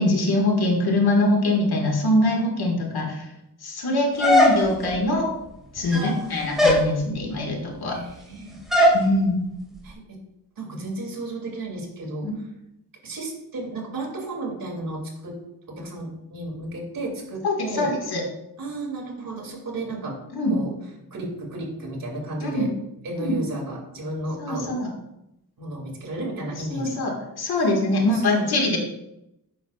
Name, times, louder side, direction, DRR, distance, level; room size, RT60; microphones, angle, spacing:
voice 1, 0.0-3.3 3.6-5.3 5.7-8.0 8.9-9.4 12.2-12.3 17.4-18.2 20.3-20.6 22.4-22.7 23.2-23.3 24.4-24.9 26.7-28.8, left 1 dB, 75° left, 1 dB, 1.8 m, -23 dB
sound 1, 4.2-5.0 5.8-6.2 6.6-6.9 8.7-9.0, left 1 dB, ahead, 2.1 m, -18 dB
voice 2, 5.9-6.6 7.9-8.6 9.8-10.0 10.6-12.3 13.0-15.4 15.7-17.9 18.6-20.2 20.5-20.7 21.1-22.7 23.0-24.8 25.6-27.0 27.5-28.5, right 2 dB, 60° right, -1 dB, 2.6 m, -33 dB
9.4 x 6.6 x 2.4 m, 0.84 s
wide cardioid pair, 110°, 38 cm